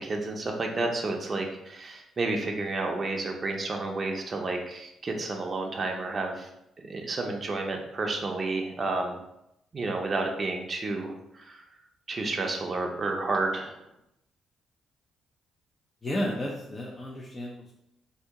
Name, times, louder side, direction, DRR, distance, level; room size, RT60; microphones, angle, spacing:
voice 1, 0.0-6.5 6.9-9.2 9.7-11.6 12.1-13.8, right 3 dB, 35° right, 2 dB, 0.5 m, -31 dB
voice 2, 16.0-17.7, left 1 dB, 30° left, -3 dB, 0.5 m, -32 dB
2.8 x 2.7 x 3.6 m, 0.82 s
cardioid pair, 90°, 0 cm